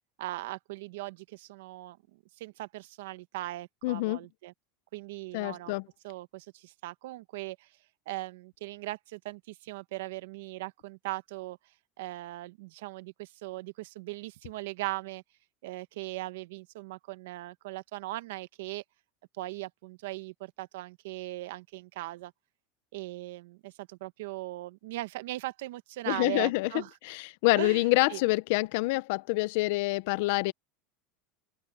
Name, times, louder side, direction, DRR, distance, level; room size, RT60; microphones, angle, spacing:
voice 1, 0.2-4.5 4.9-5.7 6.0-7.7 8.1-11.6 12.0-15.2 15.6-18.8 19.4-22.3 22.9-26.9 27.5-28.2, right 18 dB, 85° right, 1.2 m, -39 dB
voice 2, 3.8-4.2 5.3-5.8 26.1-26.7 27.0-30.5, left 22 dB, 70° left, 0.8 m, -27 dB
supercardioid pair, 130°, 0 cm